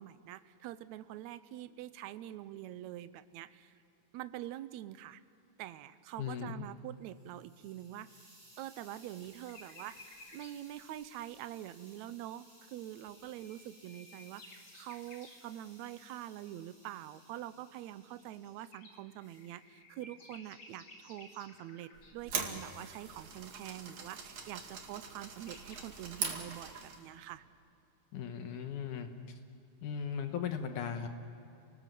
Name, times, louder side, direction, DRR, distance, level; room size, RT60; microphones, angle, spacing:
voice 1, 0.0-3.7 4.1-5.2 5.6-8.1 8.6-10.0 10.3-27.4, right 13 dB, 75° right, 13 dB, 1.8 m, -45 dB
voice 2, 6.2-6.7 28.1-29.1 29.8-31.1, left 7 dB, 75° left, 6 dB, 2.6 m, -37 dB
Hiss, 6.9-18.7 19.2-19.6, right 1 dB, 10° right, 7.4 m, -61 dB
sound 1, 9.2-10.6 13.1-15.4 18.1-22.3 24.9-25.0 25.2-25.8, left 2 dB, 35° left, 3.2 m, -56 dB
sound 2, 22.0-27.1, right 5 dB, 60° right, 3.2 m, -42 dB
29.0 x 19.5 x 7.6 m, 2.8 s
omnidirectional pair, 3.7 m